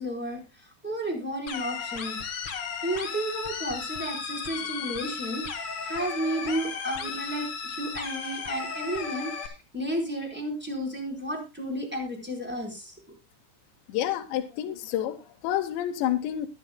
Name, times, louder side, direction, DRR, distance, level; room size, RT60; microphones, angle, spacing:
voice 1, 0.0-2.3 2.8-13.0, right 1 dB, 5° right, 0 dB, 3.5 m, -32 dB
sound 1, 1.5-9.5, left 6 dB, 50° left, 1.8 m, -35 dB
voice 2, 13.9-16.5, left 11 dB, 80° left, 5 dB, 3.2 m, -29 dB
21.5 x 10.0 x 2.2 m, 0.27 s
omnidirectional pair, 5.1 m